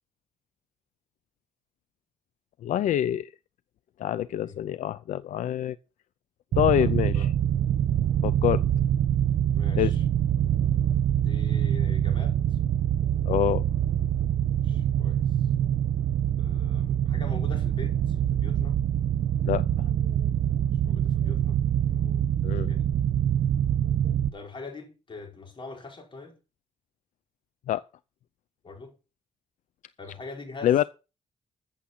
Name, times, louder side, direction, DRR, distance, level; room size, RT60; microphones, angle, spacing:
voice 1, 2.6-3.3 4.0-5.8 6.6-7.3 8.2-8.6 9.8-9.9 13.3-13.6 19.5-19.6 22.4-22.7 27.7-27.8 30.6-30.8, left 12 dB, 85° left, 0.5 m, -25 dB
sound 1, 6.5-24.3, right 10 dB, 80° right, 1.1 m, -25 dB
voice 2, 6.8-7.3 9.5-10.0 11.2-12.6 14.6-15.2 16.4-18.8 20.8-21.6 21.9-22.3 22.7-22.8 24.3-26.4 28.6-29.0 30.0-30.9, left 3 dB, 40° left, 5.4 m, -43 dB
14.5 x 7.3 x 5.6 m
cardioid pair, 100°, 13 cm